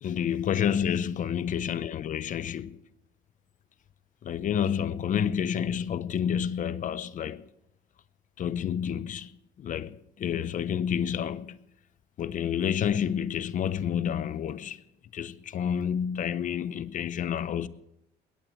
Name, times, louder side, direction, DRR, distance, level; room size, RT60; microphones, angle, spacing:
voice 1, 0.0-2.8 4.2-7.4 8.4-9.3 9.6-11.6 12.2-14.8 15.1-17.7, left 8 dB, 50° left, 0.8 m, -29 dB
21.0 x 18.0 x 3.2 m
cardioid pair, 110°, 17 cm